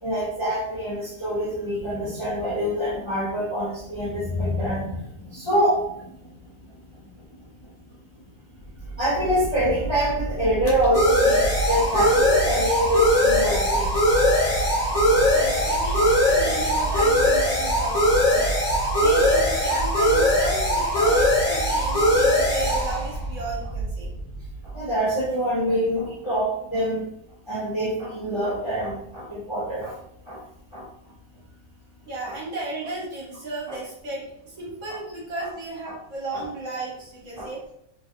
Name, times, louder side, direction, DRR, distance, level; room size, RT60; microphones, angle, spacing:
voice 1, 0.0-6.4 7.6-7.7 8.2-8.3 9.0-13.9 14.1-14.2 14.6-15.2 19.0-19.1 24.6-27.1 27.5-29.9 30.3-30.4 30.7-30.9 32.3-32.4 34.9-35.0 35.4-35.5 36.3-36.4 37.4-37.5, equal, 30° left, -9 dB, 0.6 m, -26 dB
sound 1, 9.0-24.4, equal, 55° left, 1.0 m, -21 dB
voice 2, 15.3-18.5 19.0-24.1 32.1-37.6, right 2 dB, 60° right, -5 dB, 1.3 m, -34 dB
3.0 x 2.3 x 2.6 m, 0.75 s
omnidirectional pair, 1.5 m